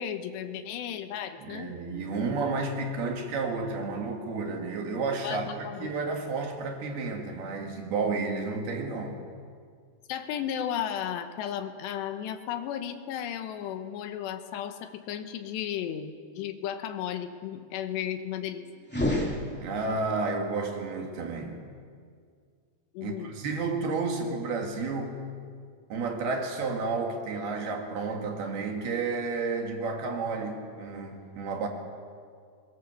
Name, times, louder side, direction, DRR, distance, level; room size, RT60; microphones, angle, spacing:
voice 1, 0.0-1.8 5.2-5.9 10.1-18.7 22.9-23.3, left 9 dB, 80° left, 8 dB, 3.3 m, -34 dB
voice 2, 1.4-5.5 5.8-9.2 19.6-21.6 23.0-25.2 25.9-31.7, right 4 dB, 65° right, 2 dB, 3.9 m, -31 dB
sound 1, 18.8-20.1, left 1 dB, 5° left, 1.9 m, -30 dB
23.5 x 21.0 x 7.0 m, 2.1 s
omnidirectional pair, 4.9 m